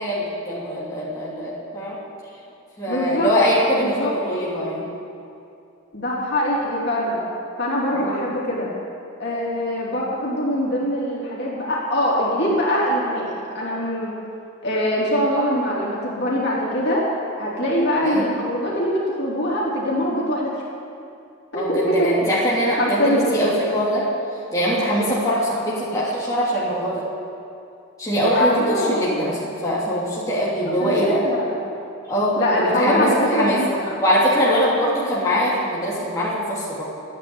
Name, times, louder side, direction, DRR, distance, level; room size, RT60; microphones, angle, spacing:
voice 1, 0.0-2.0 2.8-4.9 7.9-8.3 18.0-18.2 21.5-24.1 24.5-27.0 28.0-31.3 32.1-33.6 34.0-36.8, equal, 15° left, -8 dB, 2.8 m, -22 dB
voice 2, 2.9-3.3 3.7-4.1 5.9-7.2 7.6-8.7 9.2-14.1 14.6-17.1 17.4-20.6 21.5-22.1 22.8-23.3 28.3-29.2 30.8-31.6 32.4-33.9, equal, 50° left, -5 dB, 3.5 m, -23 dB
13.0 x 9.4 x 9.8 m, 2.5 s
head